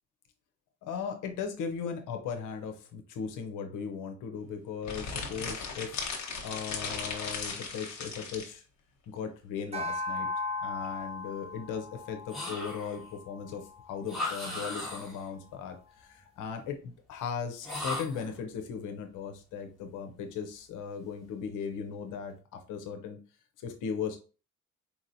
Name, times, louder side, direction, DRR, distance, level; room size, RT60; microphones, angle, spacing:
voice 1, 0.8-6.0 6.4-8.6 9.1-10.3 10.6-23.2 23.6-24.2, left 6 dB, 85° left, 5 dB, 0.7 m, -37 dB
sound 1, 4.8-8.5, left 5 dB, 65° left, 1.3 m, -37 dB
sound 2, 9.7-14.3, left 3 dB, 20° right, 0.6 m, -38 dB
sound 3, 12.3-13.1 14.1-15.3 17.6-18.4, left 2 dB, ahead, 1.9 m, -37 dB
4.5 x 2.9 x 2.6 m, 0.34 s
cardioid pair, 90°, 30 cm